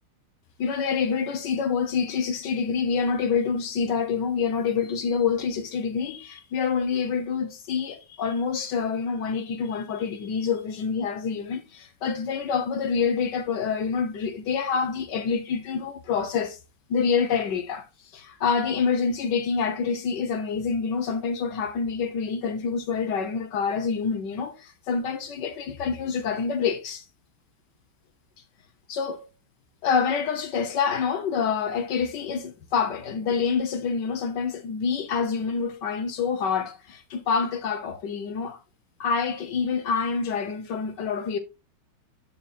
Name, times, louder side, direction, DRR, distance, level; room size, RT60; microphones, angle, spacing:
voice 1, 0.6-16.6 16.9-17.9 18.1-27.0 28.9-29.3 29.8-38.6 39.0-41.4, left 6 dB, 65° left, 1.3 m, -27 dB
12.0 x 4.2 x 2.3 m
omnidirectional pair, 2.2 m